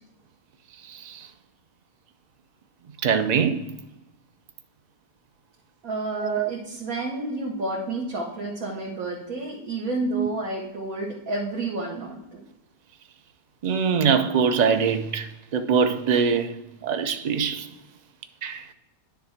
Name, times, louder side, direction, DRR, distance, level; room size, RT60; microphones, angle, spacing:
voice 1, 0.9-1.3 3.0-3.6 6.2-6.5 10.1-10.3 13.6-16.6 16.8-17.7 18.4-18.7, right 6 dB, 55° right, 0.5 m, -23 dB
voice 2, 5.8-12.4, right 2 dB, 75° right, 1.8 m, -30 dB
10.0 x 3.4 x 5.8 m
omnidirectional pair, 1.5 m